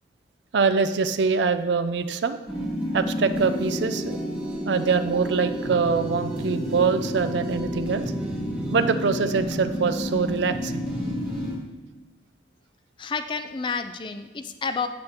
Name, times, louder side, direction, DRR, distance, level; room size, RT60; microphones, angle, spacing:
voice 1, 0.5-2.4 2.9-4.2 4.7-8.0 8.7-10.9, right 5 dB, 75° right, 10 dB, 0.4 m, -24 dB
sound 1, 2.5-11.6, equal, 10° right, 1.6 m, -30 dB
voice 2, 13.0-14.9, left 5 dB, 25° left, 8 dB, 0.4 m, -30 dB
8.6 x 7.7 x 2.9 m, 1.2 s
head